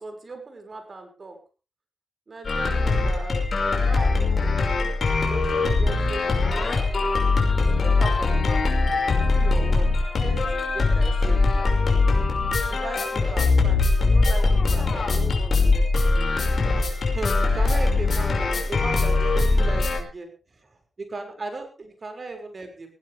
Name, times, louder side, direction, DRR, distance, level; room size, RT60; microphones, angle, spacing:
voice 1, 0.0-1.4 2.3-3.5 3.8-4.6 5.3-6.9 7.6-8.8 9.2-9.9 10.2-11.7 12.5-15.8 16.1-16.4 16.7-20.3 21.0-22.9, right 3 dB, 45° right, 5 dB, 6.1 m, -37 dB
sound 1, 2.4-20.0, left 3 dB, 60° left, 5.7 m, -21 dB
18.5 x 17.5 x 3.6 m, 0.34 s
cardioid pair, 80°, 0 cm